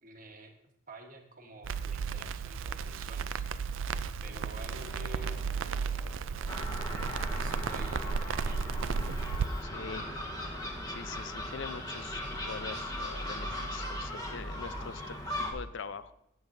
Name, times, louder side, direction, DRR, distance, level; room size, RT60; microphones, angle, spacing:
voice 1, 0.0-0.5 0.9-3.5 4.2-5.6 6.9-8.7, right 2 dB, 40° right, 3 dB, 1.3 m, -49 dB
Crackle, 1.6-9.5, right 5 dB, 65° right, 0.4 m, -34 dB
sound 1, 4.3-11.2, left 1 dB, 80° left, 2.7 m, -54 dB
Gull seagull, 6.5-15.5, left 1 dB, 20° left, 1.2 m, -38 dB
voice 2, 9.6-10.1 10.4-10.5 10.9-16.1, left 5 dB, 55° left, 14 dB, 0.5 m, -43 dB
15.0 x 9.0 x 2.6 m, 0.81 s
head